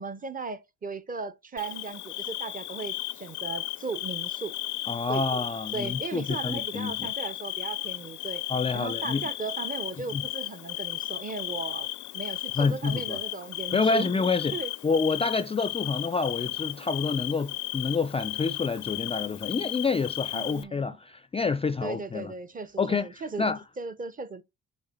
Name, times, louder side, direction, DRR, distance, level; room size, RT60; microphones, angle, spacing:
voice 1, 0.0-4.5 5.1-5.2 5.7-8.4 8.7-11.9 12.1-14.1 14.5-14.7 20.3-21.0 21.8-23.5 23.8-24.4, right 4 dB, 30° right, 0.7 m, -37 dB
Bird / Cricket, 1.6-20.6, left 17 dB, 75° left, 0.5 m, -35 dB
voice 2, 4.9-7.1 8.5-9.2 10.1-10.2 12.6-13.2 13.7-14.6 14.8-22.3 22.8-23.6, left 4 dB, 20° left, 0.4 m, -28 dB
6.6 x 3.4 x 4.2 m
cardioid pair, 90°, 30 cm